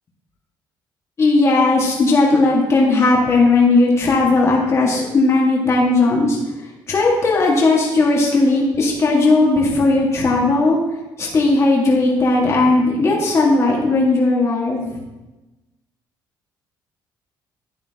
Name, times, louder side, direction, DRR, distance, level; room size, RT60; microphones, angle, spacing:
voice 1, 1.2-6.4 6.9-10.8 11.2-14.8, left 3 dB, 35° left, -3 dB, 1.8 m, -16 dB
11.0 x 8.5 x 2.9 m, 1.1 s
cardioid pair, 120°, 8 cm